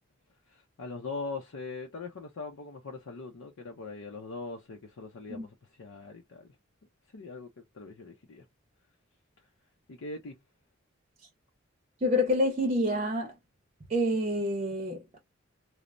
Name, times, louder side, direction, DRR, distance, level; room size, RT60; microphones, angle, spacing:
voice 1, 0.5-6.5 7.1-8.4 9.9-10.4, left 3 dB, 90° left, 0.6 m, -41 dB
voice 2, 12.0-13.3 13.9-15.2, left 1 dB, 30° right, 0.6 m, -27 dB
3.1 x 2.0 x 2.4 m
head